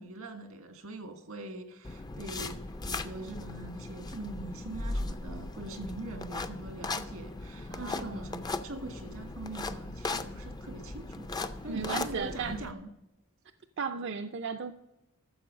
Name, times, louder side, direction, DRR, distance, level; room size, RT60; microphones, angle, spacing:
voice 1, 0.0-11.3 11.6-12.9, right 2 dB, 85° right, 6 dB, 1.7 m, -43 dB
sound 1, 1.8-12.7, left 3 dB, 20° left, 0.4 m, -38 dB
voice 2, 7.7-8.3 11.7-12.6 13.8-14.7, right 5 dB, 55° right, 7 dB, 0.5 m, -35 dB
14.0 x 6.8 x 5.1 m, 0.94 s
head